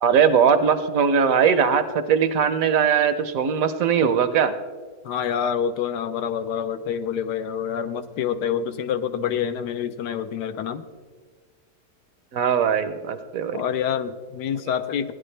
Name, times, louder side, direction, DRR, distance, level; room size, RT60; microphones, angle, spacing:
voice 1, 0.0-4.5 12.3-13.6, right 7 dB, 65° right, 11 dB, 1.0 m, -20 dB
voice 2, 5.0-10.9 13.5-15.1, left 8 dB, 85° left, 10 dB, 1.3 m, -27 dB
16.0 x 10.0 x 3.3 m, 1.5 s
omnidirectional pair, 1.7 m